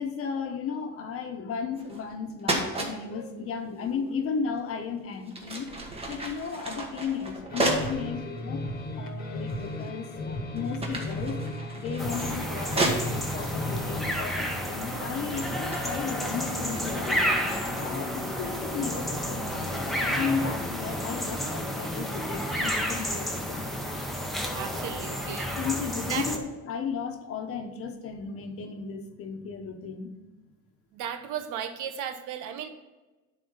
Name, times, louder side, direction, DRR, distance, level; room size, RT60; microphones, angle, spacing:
voice 1, 0.0-5.7 6.1-8.6 9.0-11.4 11.7-17.2 17.7-23.7 25.6-30.1, left 6 dB, 50° left, 6 dB, 1.1 m, -34 dB
sound 1, 1.8-2.1 2.4-2.9 4.6-4.7 5.2-8.0 8.7-8.8 9.5-10.0 10.3-13.5 14.3-14.6 14.9-17.9, right 2 dB, 20° right, 1.5 m, -33 dB
sound 2, 7.5-14.2, left 1 dB, 30° left, 1.4 m, -35 dB
sound 3, 12.0-26.4, equal, ahead, 1.0 m, -31 dB
voice 2, 24.5-25.5 26.1-26.3 30.9-32.7, right 9 dB, 80° right, 8 dB, 1.0 m, -35 dB
10.5 x 4.2 x 5.5 m, 1.2 s
cardioid pair, 150°, 30 cm